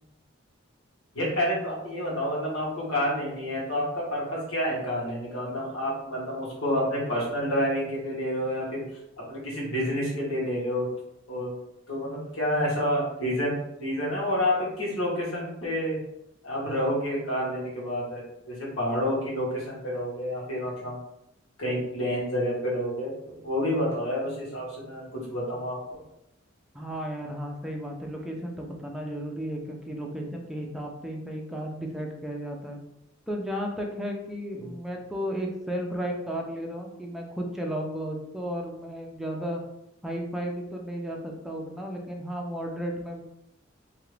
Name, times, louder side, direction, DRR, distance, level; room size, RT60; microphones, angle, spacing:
voice 1, 1.1-8.8 9.3-10.9 11.3-11.6 11.9-13.5 13.8-16.0 16.4-21.0 21.6-26.0 34.6-34.7, equal, 85° left, -5 dB, 1.4 m, -29 dB
voice 2, 26.7-32.8 33.3-39.6 40.0-43.2, equal, ahead, 0 dB, 0.4 m, -34 dB
2.8 x 2.4 x 3.2 m, 0.81 s
head